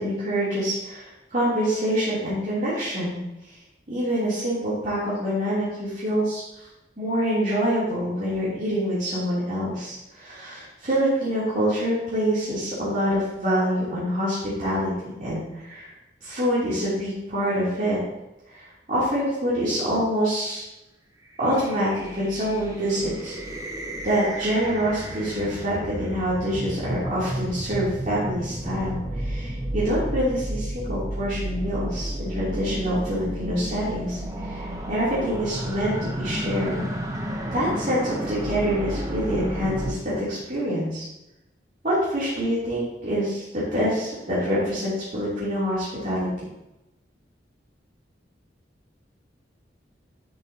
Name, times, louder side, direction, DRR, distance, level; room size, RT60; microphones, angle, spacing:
voice 1, 0.0-3.2 3.9-6.4 7.0-14.9 15.2-15.9 16.2-18.0 18.5-20.6 21.4-23.3 24.0-36.8 37.5-41.1 41.8-46.3, equal, 45° right, -11 dB, 3.1 m, -26 dB
sound 1, 21.3-39.9, right 1 dB, 20° right, 1.1 m, -32 dB
11.0 x 7.1 x 2.9 m, 0.95 s
head